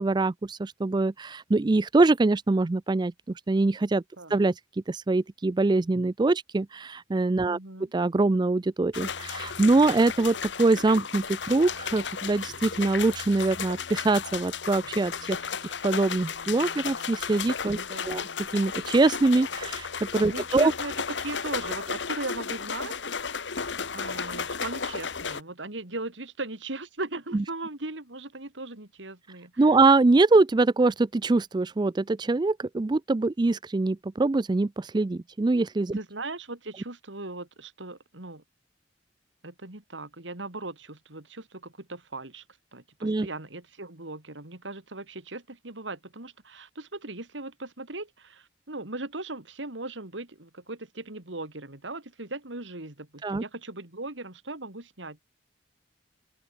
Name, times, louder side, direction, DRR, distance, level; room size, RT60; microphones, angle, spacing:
voice 1, 0.0-3.1 3.5-4.0 4.3-4.5 4.9-7.6 7.9-15.4 15.8-17.8 18.1-18.2 18.5-19.9 20.1-20.7 27.3-27.4 29.6-36.0 43.0-43.3 53.2-53.4, right 3 dB, 25° right, 0.4 m, -23 dB
voice 2, 7.4-7.9 17.8-18.3 20.3-23.0 23.9-29.7 35.9-38.4 39.4-42.4 42.7-55.2, right 2 dB, 90° right, 3.2 m, -38 dB
sound 1, 8.9-25.4, left 6 dB, 75° left, 1.4 m, -34 dB
open air
head